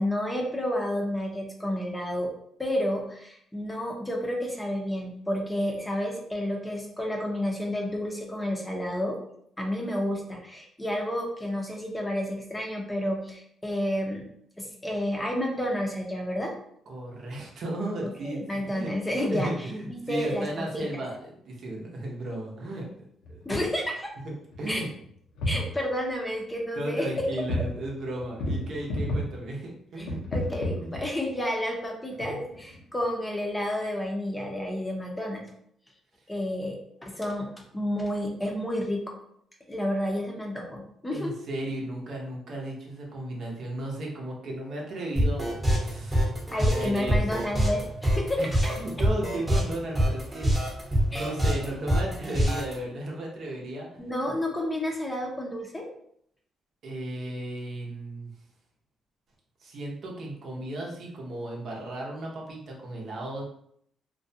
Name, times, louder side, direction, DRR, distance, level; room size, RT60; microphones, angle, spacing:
voice 1, 0.0-2.3 2.6-9.2 9.6-14.3 14.6-16.5 18.0-19.5 19.9-20.9 23.5-24.1 24.7-24.8 25.5-27.4 30.0-35.4 36.3-39.0 39.7-41.3 46.5-48.7 51.1-51.3 54.0-55.9, left 1 dB, 15° left, 0 dB, 0.6 m, -30 dB
voice 2, 16.9-18.9 19.3-22.9 23.3-23.4 24.2-24.9 26.8-30.2 30.8-30.9 32.3-32.4 41.1-47.5 48.4-48.5 48.8-54.1 56.8-58.3 59.6-63.4, right 1 dB, 60° right, -1 dB, 0.7 m, -35 dB
sound 1, 23.2-23.6 24.2-24.3 24.5-25.1 25.4-25.7 27.2-27.8 28.0-29.4 30.0-31.4 32.1-33.0, left 1 dB, 85° left, 0.6 m, -31 dB
sound 2, 45.2-52.7, equal, 10° right, 0.9 m, -25 dB
2.4 x 2.2 x 2.7 m, 0.69 s
cardioid pair, 90°, 0 cm